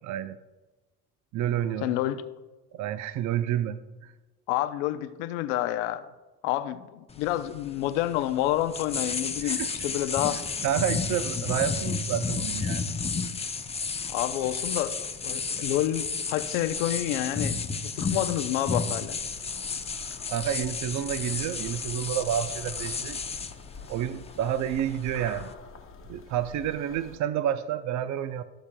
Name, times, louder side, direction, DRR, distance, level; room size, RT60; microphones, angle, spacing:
voice 1, 0.0-0.4 1.3-1.9 2.7-4.1 9.4-9.7 10.6-12.8 20.3-23.2 23.9-25.5 26.1-28.4, right 10 dB, 55° right, 12 dB, 0.6 m, -29 dB
voice 2, 1.8-2.2 4.5-6.1 6.4-10.4 14.1-19.2, left 13 dB, 90° left, 11 dB, 0.7 m, -29 dB
sound 1, 7.1-25.5, left 4 dB, 20° left, 0.7 m, -32 dB
sound 2, 19.2-27.2, left 5 dB, 40° left, 1.1 m, -47 dB
16.5 x 7.2 x 2.2 m, 1.2 s
supercardioid pair, 85°, 35 cm